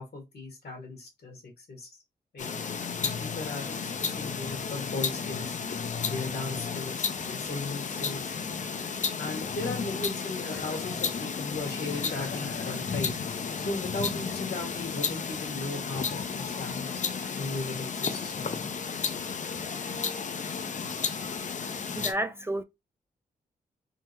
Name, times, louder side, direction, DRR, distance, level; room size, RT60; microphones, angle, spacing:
voice 1, 0.0-2.0 2.3-2.5 3.0-5.6 6.0-8.2 9.2-18.7, left 3 dB, 65° left, 1.4 m, -37 dB
sound 1, 2.4-22.1, left 5 dB, 45° left, 0.5 m, -33 dB
voice 2, 21.9-22.6, right 1 dB, 15° right, 0.3 m, -30 dB
3.7 x 2.0 x 2.9 m
supercardioid pair, 50°, 18 cm